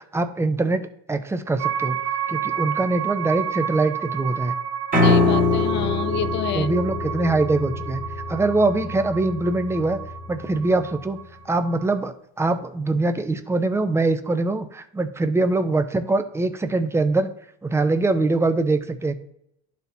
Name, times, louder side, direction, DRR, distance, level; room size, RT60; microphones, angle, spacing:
voice 1, 0.1-2.0 2.3-4.5 6.5-8.0 8.3-10.0 10.3-11.2 11.4-17.3 17.6-19.1, right 2 dB, 10° right, 9 dB, 0.6 m, -23 dB
sound 1, 1.6-12.1, right 8 dB, 50° right, 1.7 m, -31 dB
Piano, 4.9-11.1, left 3 dB, 25° right, 1.5 m, -24 dB
voice 2, 5.0-6.7, left 10 dB, 40° left, 15 dB, 0.5 m, -28 dB
11.5 x 4.2 x 2.7 m, 0.76 s
supercardioid pair, 110°, 30 cm